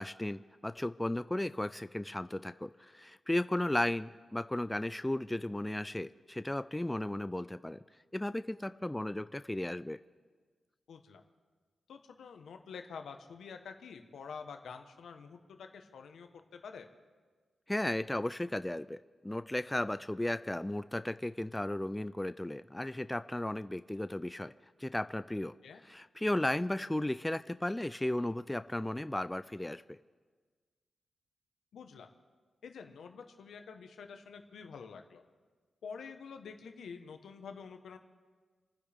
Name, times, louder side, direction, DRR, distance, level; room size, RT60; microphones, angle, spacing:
voice 1, 0.0-7.8 8.1-10.0 17.7-24.5 24.8-25.5 25.8-29.8, left 1 dB, 10° left, 13 dB, 0.3 m, -35 dB
voice 2, 10.9-11.2 11.9-16.9 25.6-25.8 31.7-32.1 32.6-35.2 35.8-38.0, left 6 dB, 90° left, 5 dB, 1.2 m, -48 dB
29.5 x 10.0 x 3.5 m, 1.5 s
wide cardioid pair, 120°, 0 cm